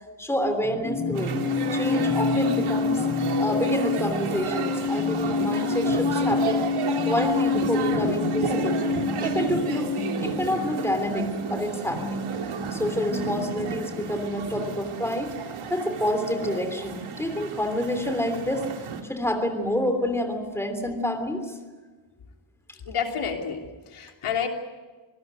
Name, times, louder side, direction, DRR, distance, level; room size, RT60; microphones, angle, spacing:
voice 1, 0.2-1.4 1.7-3.1 3.4-6.7 7.0-8.8 9.2-9.9 10.2-12.3 12.7-15.3 15.7-18.7 19.0-21.5, left 1 dB, 5° left, 6 dB, 3.1 m, -28 dB
sound 1, 0.6-14.0, left 4 dB, 20° left, 4.5 m, -28 dB
sound 2, 1.1-19.0, right 5 dB, 80° right, 2.9 m, -32 dB
voice 2, 22.8-24.5, left 7 dB, 85° left, 3 dB, 3.2 m, -29 dB
26.0 x 18.5 x 9.2 m, 1.3 s
wide cardioid pair, 155°, 50 cm